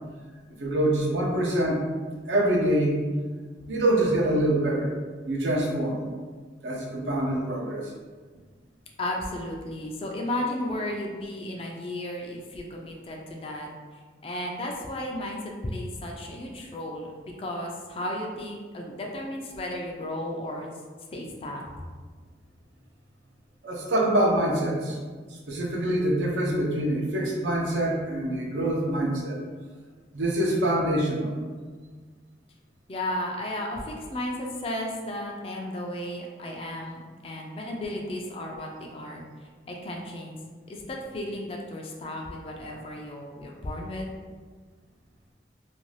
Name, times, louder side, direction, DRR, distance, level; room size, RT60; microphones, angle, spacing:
voice 1, 0.6-1.9 2.3-3.0 3.7-4.9 5.3-6.0 6.6-7.9 23.6-25.0 25.5-29.4 30.1-31.3, right 1 dB, 90° right, -2 dB, 0.6 m, -25 dB
voice 2, 9.0-13.7 14.2-17.1 17.4-20.7 21.1-21.6 32.9-39.2 39.7-40.4 40.7-44.1, left 1 dB, 30° left, 0 dB, 0.3 m, -34 dB
2.6 x 2.2 x 3.1 m, 1.5 s
head